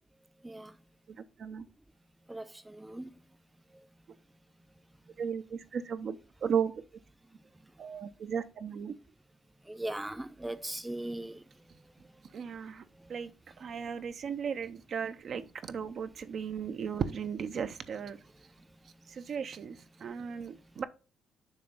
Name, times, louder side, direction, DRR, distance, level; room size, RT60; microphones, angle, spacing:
voice 1, 2.3-3.1 3.7-3.8 9.7-11.4, right 1 dB, 10° right, 0.5 m, -39 dB
voice 2, 5.2-6.2 6.4-6.7 7.8-8.9 12.3-12.8 13.1-13.3 13.6-18.2 19.1-19.8 20.0-20.8, right 7 dB, 60° right, 0.5 m, -35 dB
6.7 x 2.9 x 5.4 m
cardioid pair, 90°, 0 cm